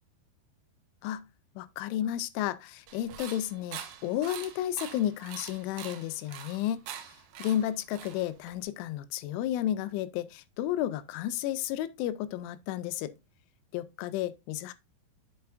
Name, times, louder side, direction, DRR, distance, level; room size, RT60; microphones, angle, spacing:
voice 1, 1.6-6.8 7.4-13.1 13.7-14.7, left 12 dB, 85° left, 2.9 m, -32 dB
sound 1, 2.9-8.6, right 9 dB, 80° right, 2.1 m, -44 dB
8.0 x 6.4 x 2.5 m
omnidirectional pair, 5.5 m